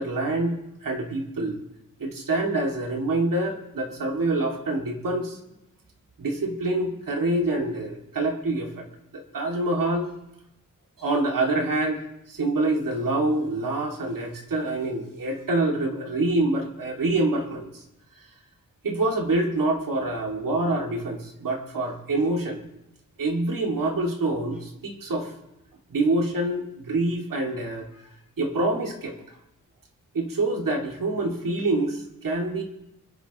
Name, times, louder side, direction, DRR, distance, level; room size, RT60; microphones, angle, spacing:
voice 1, 0.0-1.6 2.0-5.4 6.2-8.8 9.1-10.1 11.0-12.0 12.3-17.8 18.8-22.6 23.2-25.3 25.9-27.9 28.4-29.4 30.1-32.6, right 2 dB, 75° right, 1 dB, 2.5 m, -26 dB
26.0 x 10.5 x 3.1 m, 0.87 s
wide cardioid pair, 85°, 33 cm